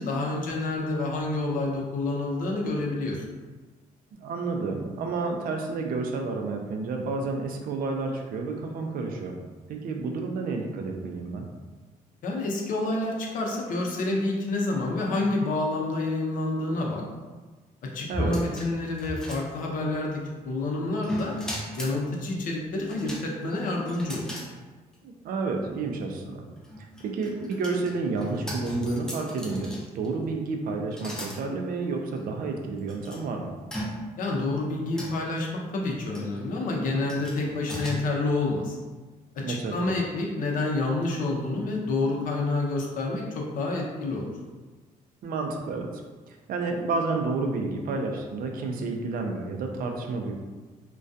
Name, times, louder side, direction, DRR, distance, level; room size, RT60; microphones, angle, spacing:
voice 1, 0.0-3.2 12.2-17.0 17.8-21.4 21.8-24.3 34.2-38.8 39.3-44.3, left 2 dB, 65° left, -1 dB, 0.5 m, -28 dB
voice 2, 4.1-9.4 9.7-11.5 18.1-18.4 25.0-26.4 26.8-33.5 39.4-39.9 45.2-45.9 46.3-50.3, right 3 dB, 70° right, 2 dB, 0.4 m, -30 dB
sound 1, 18.1-19.9 21.0-22.0 22.9-24.5 24.9-25.0 26.6-30.1 30.9-31.4 32.2-32.3 32.9-33.2 33.7-34.3 35.0-35.4 36.1-36.4 37.1-37.9, equal, 5° left, 0.4 m, -37 dB
2.3 x 2.2 x 2.6 m, 1.3 s
cardioid pair, 115°, 15 cm